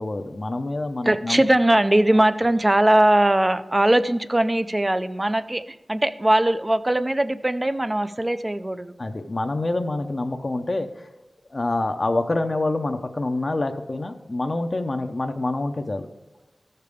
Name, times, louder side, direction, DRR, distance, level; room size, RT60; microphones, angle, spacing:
voice 1, 0.0-1.4 9.0-10.9 11.5-16.1, left 2 dB, 40° left, 5 dB, 0.7 m, -26 dB
voice 2, 1.1-5.6 5.9-8.9, right 1 dB, 20° right, 12 dB, 0.5 m, -20 dB
13.5 x 6.7 x 3.5 m, 1.1 s
wide cardioid pair, 80°, 0 cm